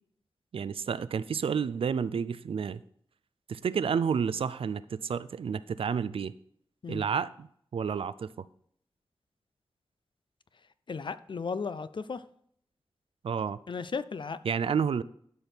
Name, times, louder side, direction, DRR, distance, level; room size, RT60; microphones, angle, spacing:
voice 1, 0.5-2.8 3.5-6.3 6.9-8.5 13.2-13.6 14.4-15.0, right 6 dB, 80° right, 0.4 m, -30 dB
voice 2, 10.9-12.2 13.7-14.4, left 5 dB, 60° left, 0.5 m, -35 dB
12.0 x 5.2 x 4.5 m
cardioid pair, 55°, 9 cm